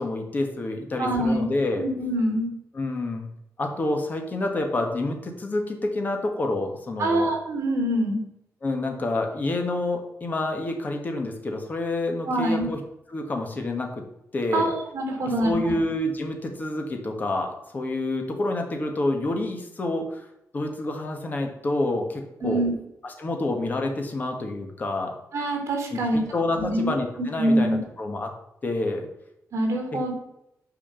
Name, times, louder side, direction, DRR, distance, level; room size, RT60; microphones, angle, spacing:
voice 1, 0.0-1.8 2.7-3.3 3.6-7.3 8.6-12.8 13.1-14.0 14.3-14.7 15.4-20.3 20.5-22.6 23.0-25.1 25.9-28.3 28.6-29.1, left 2 dB, 30° left, 3 dB, 1.6 m, -28 dB
voice 2, 1.0-1.5 1.8-2.5 7.0-8.2 12.3-12.7 14.5-15.7 22.4-22.7 25.3-26.2 26.5-26.9 27.4-27.8 29.5-30.1, right 1 dB, 55° right, 2 dB, 3.2 m, -24 dB
9.1 x 4.9 x 7.0 m, 0.82 s
wide cardioid pair, 175°, 6 cm